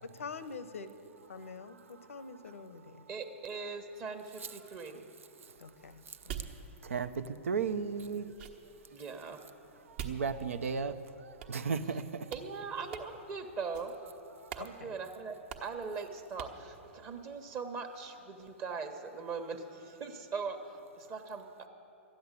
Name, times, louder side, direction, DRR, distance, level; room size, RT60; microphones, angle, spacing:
voice 1, 0.0-0.9 1.3-3.0 5.6-6.4 14.6-15.0, left 4 dB, 85° left, 13 dB, 0.8 m, -45 dB
voice 2, 3.1-5.0 8.9-9.4 10.8-10.9 11.8-12.0 12.3-13.9 14.5-15.3 15.6-21.7, right 5 dB, 35° right, 5 dB, 1.1 m, -41 dB
sound 1, 5.6-10.9 11.4-12.0 12.3-12.5 12.9-13.3 13.7-14.1 14.5-14.7 15.0-15.1 15.5-15.8 16.4-16.7, right 8 dB, 55° right, 1.2 m, -47 dB
voice 3, 6.8-8.3 9.9-12.3 14.4-14.5, right 5 dB, 80° right, 12 dB, 0.7 m, -35 dB
13.0 x 10.0 x 8.2 m, 2.8 s
hypercardioid pair, 120°, 7 cm